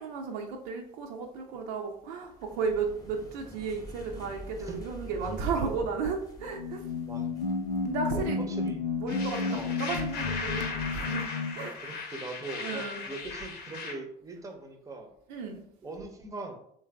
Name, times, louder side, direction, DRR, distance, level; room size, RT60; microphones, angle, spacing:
voice 1, 0.0-6.9 7.8-8.5 9.0-11.8 12.6-13.0 15.3-15.6, right 5 dB, 55° right, 2 dB, 0.6 m, -34 dB
sound 1, 2.3-11.0, left 1 dB, 15° left, 0.8 m, -46 dB
sound 2, 6.4-11.7, left 4 dB, 85° left, 0.4 m, -32 dB
voice 2, 7.0-7.4 8.1-8.8 9.5-9.7 11.8-15.1 15.8-16.6, right 3 dB, 15° right, 5 dB, 0.7 m, -41 dB
sound 3, 9.1-13.9, left 4 dB, 50° left, 0.8 m, -38 dB
3.3 x 3.3 x 3.3 m, 0.69 s
figure-of-eight pair, 55°, 21 cm